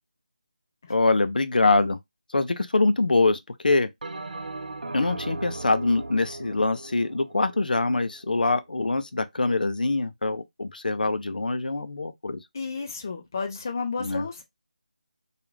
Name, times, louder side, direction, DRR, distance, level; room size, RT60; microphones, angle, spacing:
voice 1, 0.9-2.0 2.3-3.9 4.9-12.4 14.0-14.3, left 3 dB, 80° left, 0.5 m, -24 dB
Bell, 4.0-8.6, right 2 dB, 75° right, 0.6 m, -38 dB
voice 2, 12.5-14.4, left 4 dB, 25° left, 0.4 m, -32 dB
2.4 x 2.3 x 3.0 m
figure-of-eight pair, 175°, 5 cm